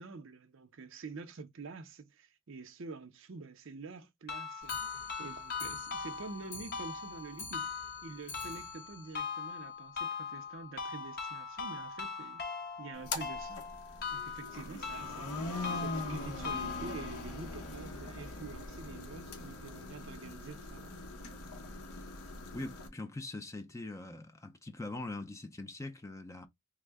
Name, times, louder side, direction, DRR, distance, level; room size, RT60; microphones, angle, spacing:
voice 1, 0.0-7.7 8.0-12.4 12.8-13.7 14.1-21.1, right 4 dB, 55° right, 0.5 m, -47 dB
sound 1, 4.3-17.2, left 5 dB, 40° left, 0.9 m, -40 dB
Clock, 4.6-10.1 10.4-10.5 10.8-10.9 11.2-11.3 11.6-11.7 12.4-12.5 13.2-13.3 14.0-14.1, left 3 dB, 60° left, 2.3 m, -49 dB
sound 2, 12.9-22.9, left 2 dB, 90° left, 0.9 m, -42 dB
voice 2, 22.5-26.5, left 2 dB, 15° left, 0.4 m, -42 dB
3.4 x 2.1 x 3.4 m
head